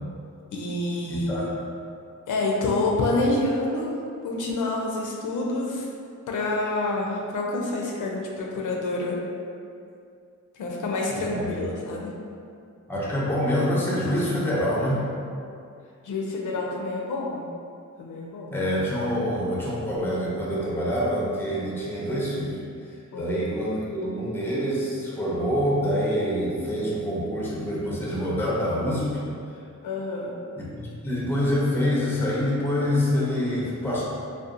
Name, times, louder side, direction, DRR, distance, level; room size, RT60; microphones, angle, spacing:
voice 1, 0.5-1.6 2.3-4.0 4.2-5.9 6.3-9.2 10.6-12.1 16.0-17.4 18.0-18.6 23.1-23.4 29.8-30.3, left 2 dB, 80° left, -1 dB, 0.5 m, -27 dB
voice 2, 1.1-1.4 11.1-11.7 12.9-15.0 18.5-22.6 23.1-29.1 30.6-34.0, equal, 10° left, -6 dB, 0.4 m, -26 dB
2.7 x 2.1 x 2.4 m, 2.4 s
wide cardioid pair, 130°, 30 cm